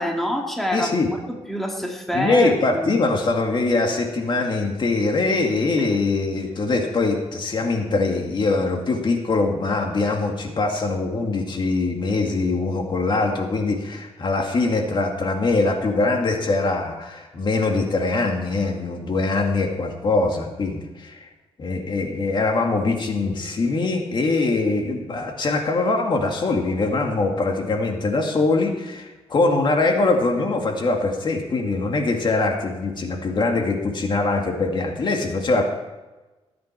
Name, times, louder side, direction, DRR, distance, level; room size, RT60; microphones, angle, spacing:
voice 1, 0.0-0.9 1.3-2.8, equal, ahead, 1 dB, 2.0 m, -26 dB
voice 2, 0.7-1.1 2.1-21.3 21.6-35.6, left 3 dB, 45° left, 2 dB, 2.1 m, -22 dB
19.5 x 9.4 x 4.5 m, 1.2 s
cardioid pair, 125°, 11 cm